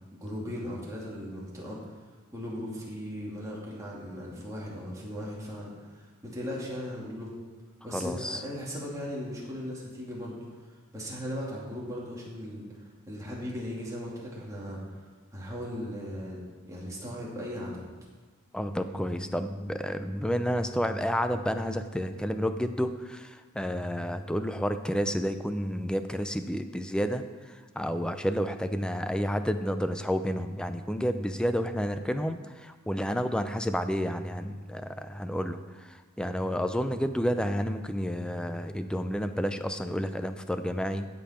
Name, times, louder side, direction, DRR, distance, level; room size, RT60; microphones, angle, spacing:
voice 1, 0.1-2.0 2.3-7.4 7.8-10.5 10.9-15.0 15.3-16.4 16.7-17.9, equal, 15° right, -5 dB, 2.5 m, -38 dB
voice 2, 7.9-8.4 18.5-41.1, equal, 5° left, 9 dB, 0.4 m, -30 dB
16.0 x 5.4 x 4.3 m, 1.4 s
head